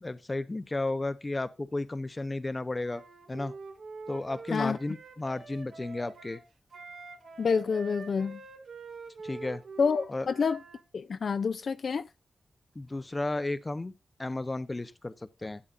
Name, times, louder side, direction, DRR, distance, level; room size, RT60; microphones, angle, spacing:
voice 1, 0.0-3.0 3.3-3.5 4.1-6.4 9.2-9.6 10.1-10.3 12.8-13.9 14.2-15.6, left 2 dB, 20° left, 0.7 m, -33 dB
Wind instrument woodwind instrument, 2.8-10.8, right 4 dB, 65° right, 2.0 m, -46 dB
voice 2, 7.4-8.4 9.8-10.6 10.9-12.1, left 5 dB, 55° left, 0.4 m, -28 dB
12.5 x 8.7 x 2.5 m
wide cardioid pair, 175°, 0 cm